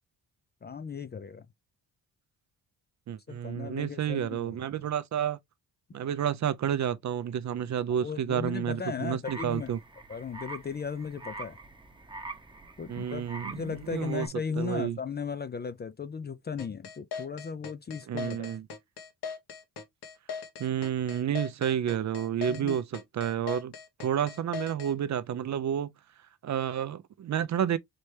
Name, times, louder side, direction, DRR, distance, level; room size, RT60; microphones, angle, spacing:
voice 1, 0.6-1.5 3.3-4.6 7.9-9.7 10.1-11.6 12.8-18.4 22.5-22.8, left 5 dB, 25° left, 0.4 m, -36 dB
voice 2, 3.1-5.4 5.9-9.8 12.9-14.3 14.6-15.0 18.1-18.6 20.6-23.7 24.0-25.9 26.4-27.8, right 9 dB, 45° right, 0.5 m, -30 dB
sound 1, 9.2-14.3, right 3 dB, 10° right, 0.8 m, -44 dB
sound 2, 16.6-24.9, left 6 dB, 90° left, 1.3 m, -39 dB
4.2 x 3.3 x 3.1 m
cardioid pair, 120°, 39 cm